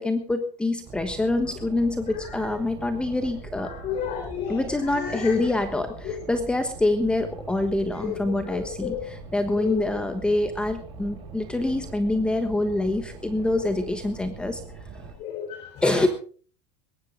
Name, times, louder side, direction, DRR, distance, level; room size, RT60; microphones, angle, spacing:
voice 1, 0.0-3.7 4.5-14.6 15.8-16.1, left 2 dB, 5° left, 8 dB, 1.3 m, -26 dB
Boat Water vehicle, 0.8-15.1, right 4 dB, 35° right, 5.5 m, -42 dB
voice 2, 2.1-2.5 3.6-5.5 6.0-6.1 8.0-9.1 9.6-10.0 13.5-13.8 15.2-16.1, left 8 dB, 45° left, 3 dB, 4.0 m, -33 dB
22.0 x 11.5 x 3.9 m, 0.42 s
supercardioid pair, 135°, 15 cm